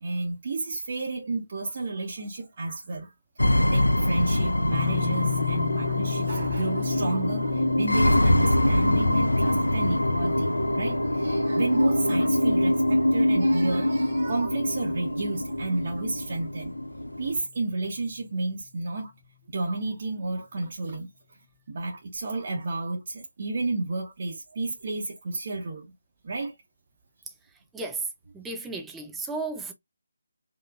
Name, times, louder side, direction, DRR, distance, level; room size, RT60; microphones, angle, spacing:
voice 1, 0.0-3.1 3.4-16.7 17.2-19.1 19.5-21.1 21.7-25.9 26.2-26.5, right 2 dB, 40° right, 1.1 m, -31 dB
sound 1, 3.4-17.4, left 1 dB, 80° left, 0.7 m, -24 dB
sound 2, 4.7-17.6, left 13 dB, 10° left, 0.9 m, -37 dB
voice 2, 27.7-28.1 28.3-29.7, right 3 dB, 5° right, 0.6 m, -33 dB
5.0 x 2.8 x 2.5 m
figure-of-eight pair, 155°, 0 cm